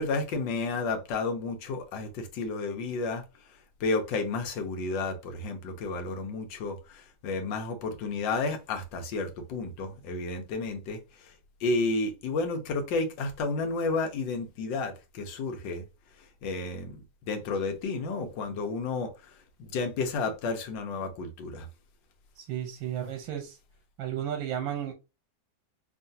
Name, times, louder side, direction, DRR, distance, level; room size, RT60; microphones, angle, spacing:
voice 1, 0.0-3.2 3.8-11.0 11.6-15.8 16.4-19.1 19.6-21.7, left 3 dB, 75° left, 1.5 m, -31 dB
voice 2, 22.4-23.6 24.0-24.9, right 10 dB, 90° right, 1.5 m, -33 dB
4.7 x 2.9 x 2.7 m
omnidirectional pair, 2.1 m